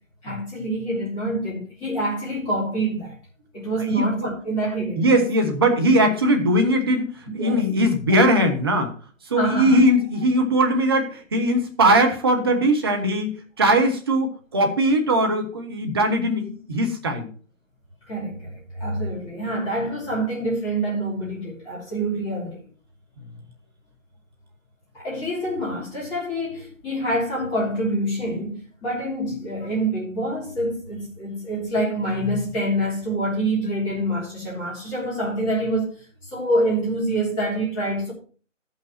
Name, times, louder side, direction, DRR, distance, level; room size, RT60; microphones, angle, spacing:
voice 1, 0.2-3.2 3.5-5.2 7.4-7.6 8.1-8.2 9.3-9.8 18.1-22.6 24.9-36.0 36.3-38.1, right 1 dB, 10° left, 2.7 m, -26 dB
voice 2, 3.9-4.3 5.0-8.9 9.3-17.3, right 1 dB, 20° right, 1.0 m, -20 dB
13.5 x 5.7 x 4.2 m
figure-of-eight pair, 145°, 39 cm